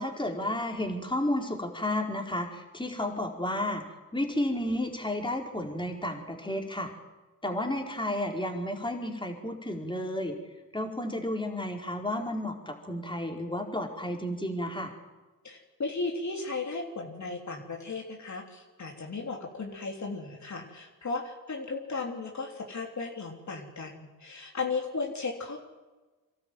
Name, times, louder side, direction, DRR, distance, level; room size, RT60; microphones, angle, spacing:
voice 1, 0.0-3.8 4.1-6.9 7.4-10.4 10.7-14.9, left 1 dB, 15° left, 2 dB, 4.6 m, -32 dB
voice 2, 15.4-25.6, left 3 dB, 50° left, 1 dB, 3.4 m, -35 dB
24.5 x 13.0 x 9.3 m, 1.2 s
supercardioid pair, 50°, 36 cm